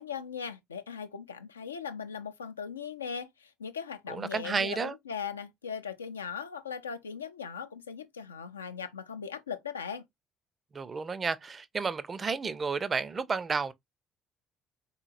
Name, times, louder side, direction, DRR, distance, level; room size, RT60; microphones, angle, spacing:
voice 1, 0.0-10.0, left 6 dB, 80° left, 0.3 m, -39 dB
voice 2, 4.1-4.9 10.7-13.7, right 5 dB, 35° right, 0.4 m, -31 dB
3.8 x 2.9 x 2.4 m
figure-of-eight pair, 50°, 0 cm